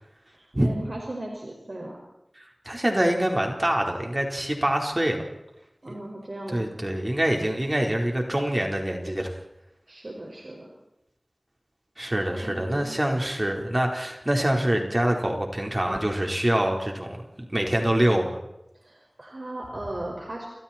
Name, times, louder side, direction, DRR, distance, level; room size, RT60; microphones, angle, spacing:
voice 1, 0.3-2.0 5.8-6.8 9.9-10.7 12.2-13.0 15.9-16.1 18.7-20.5, right 1 dB, 60° right, -1 dB, 5.6 m, -37 dB
voice 2, 2.6-5.3 6.5-9.3 12.0-17.2 17.5-18.4, right 1 dB, 30° right, 1 dB, 4.4 m, -25 dB
29.5 x 27.0 x 4.5 m, 0.86 s
wide cardioid pair, 50°, 0 cm